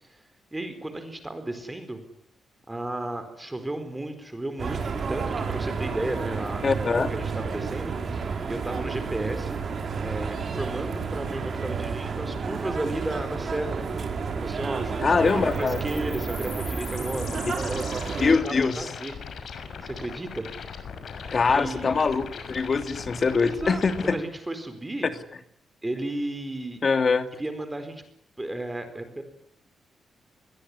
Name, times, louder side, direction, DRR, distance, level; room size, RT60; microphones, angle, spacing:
voice 1, 0.5-2.0 2.7-9.6 10.0-13.9 14.4-19.1 19.8-20.5 21.5-22.0 23.4-23.8 24.1-25.1 25.8-26.8 27.4-28.0 28.4-29.2, right 1 dB, 15° right, 9 dB, 4.5 m, -33 dB
sound 1, 4.6-18.3, right 5 dB, 50° right, 6.1 m, -31 dB
voice 2, 6.6-7.1 15.0-15.8 17.4-17.5 18.2-18.9 21.3-24.2 26.8-27.3, left 4 dB, 40° left, 9 dB, 2.8 m, -23 dB
sound 2, 15.3-24.1, left 6 dB, 65° left, 6.3 m, -40 dB
27.0 x 22.0 x 10.0 m, 0.67 s
cardioid pair, 115°, 0 cm